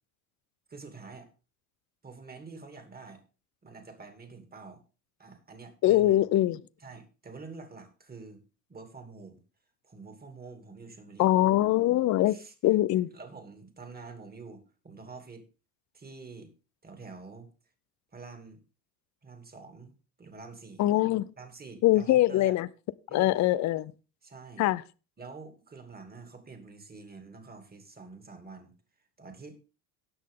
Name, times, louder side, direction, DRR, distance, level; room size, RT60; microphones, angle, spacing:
voice 1, 0.7-1.3 2.0-3.2 3.6-4.8 5.2-6.2 6.8-8.4 8.7-9.4 9.8-11.3 12.3-12.5 13.1-15.5 15.9-16.5 16.8-17.5 18.1-18.6 19.2-19.9 20.2-20.8 21.4-22.5 23.1-23.4 24.2-24.7 25.2-28.7 29.2-29.6, right 4 dB, 20° right, 2.7 m, -47 dB
voice 2, 5.8-6.6 11.2-12.4 12.6-13.1 20.8-21.3 21.8-22.7 23.1-23.9 24.6-24.8, left 14 dB, 40° left, 0.6 m, -23 dB
18.0 x 6.4 x 3.7 m
hypercardioid pair, 90°, 47 cm